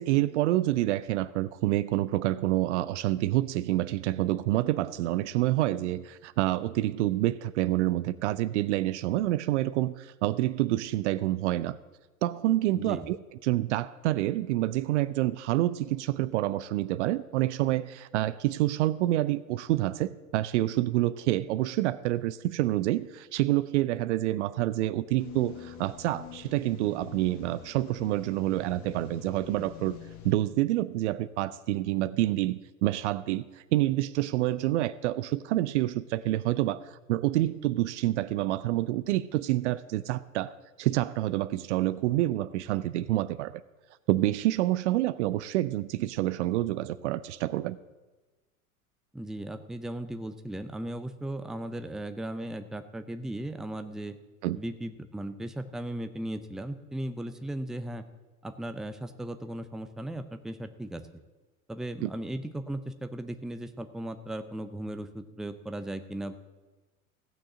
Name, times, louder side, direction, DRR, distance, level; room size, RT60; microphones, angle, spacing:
voice 1, 0.0-11.8 12.2-13.2 13.4-30.0 30.2-43.6 44.1-47.8 54.4-54.6 62.0-62.1, right 15 dB, 55° right, 16 dB, 0.6 m, -28 dB
voice 2, 12.7-13.1 49.1-54.1 54.6-58.0 58.4-61.0 61.7-66.4, right 1 dB, ahead, 9 dB, 0.6 m, -37 dB
sound 1, 25.2-30.3, left 10 dB, 40° left, 1.7 m, -46 dB
16.0 x 6.3 x 7.3 m, 1.2 s
figure-of-eight pair, 85°, 42 cm